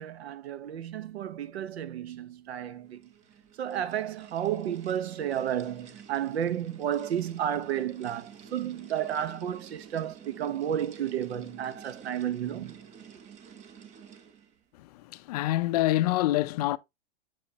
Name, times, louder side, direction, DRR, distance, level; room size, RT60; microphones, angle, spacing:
voice 1, 0.0-3.0 3.6-12.8, right 10 dB, 85° right, 0.9 m, -32 dB
sound 1, 2.5-14.6, right 7 dB, 20° right, 0.7 m, -50 dB
voice 2, 14.8-16.8, left 16 dB, 40° left, 0.4 m, -26 dB
7.4 x 5.0 x 2.7 m
supercardioid pair, 145°, 31 cm